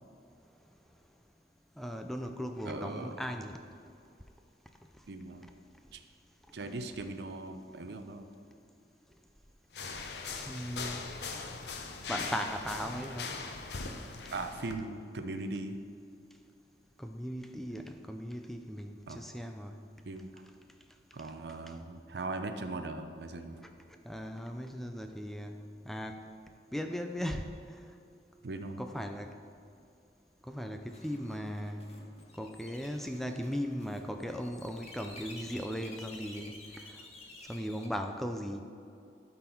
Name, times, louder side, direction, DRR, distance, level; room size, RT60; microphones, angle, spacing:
voice 1, 1.8-3.6 10.3-11.0 12.1-13.3 17.0-19.8 24.0-25.6 25.8-26.2 26.7-27.9 28.8-29.3 30.4-31.8 32.4-37.0 37.5-38.6, equal, ahead, 5 dB, 0.3 m, -38 dB
voice 2, 2.6-3.2 5.1-5.5 5.9-6.0 6.5-8.3 14.3-15.8 19.1-19.2 20.0-20.4 21.1-23.6 28.4-28.8, right 2 dB, 70° right, 7 dB, 0.6 m, -39 dB
sound 1, 9.7-14.8, left 4 dB, 70° left, 0.7 m, -40 dB
sound 2, 30.9-37.9, left 2 dB, 35° left, 1.0 m, -51 dB
12.0 x 4.0 x 4.5 m, 2.6 s
head